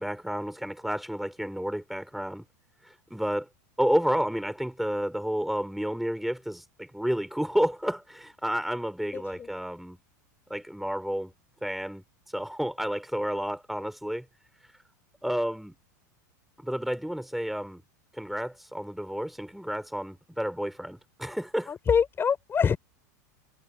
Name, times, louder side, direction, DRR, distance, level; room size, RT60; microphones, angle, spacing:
voice 1, 0.0-2.4 2.8-3.5 3.8-10.0 10.5-11.3 11.6-12.0 12.3-14.3 15.2-15.8 16.6-17.8 18.1-21.7, equal, ahead, 5.2 m, -30 dB
voice 2, 9.1-9.5 21.7-22.8, left 6 dB, 25° left, 5.9 m, -25 dB
hypercardioid pair, 110°, 9 cm